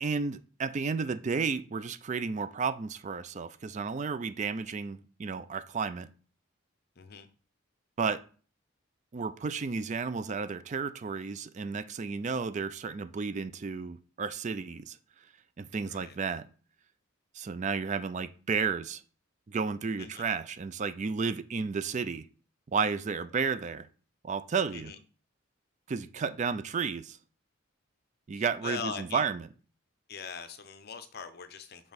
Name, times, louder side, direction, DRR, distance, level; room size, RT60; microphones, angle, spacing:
voice 1, 0.0-6.1 8.0-8.2 9.1-15.0 15.6-16.5 17.3-19.0 19.5-22.3 22.7-23.9 24.2-24.9 25.9-27.2 28.3-29.5, right 5 dB, 35° right, 0.4 m, -32 dB
voice 2, 7.0-7.3 15.9-16.2 20.0-20.3 24.7-25.0 28.3-29.3 30.1-31.9, left 6 dB, 50° left, 0.6 m, -41 dB
6.8 x 3.7 x 4.0 m
head